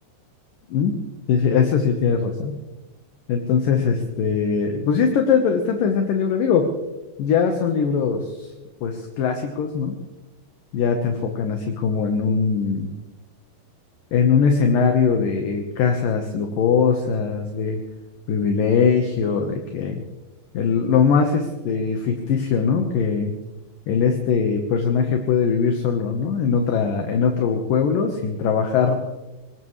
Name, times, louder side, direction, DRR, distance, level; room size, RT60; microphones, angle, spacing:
voice 1, 1.3-2.6 3.3-6.7 7.2-8.5 8.8-9.9 10.7-12.9 14.1-17.8 18.3-20.0 20.5-23.3 23.9-29.0, left 6 dB, 65° left, 4 dB, 2.4 m, -21 dB
23.0 x 19.5 x 3.2 m, 1.1 s
omnidirectional pair, 5.1 m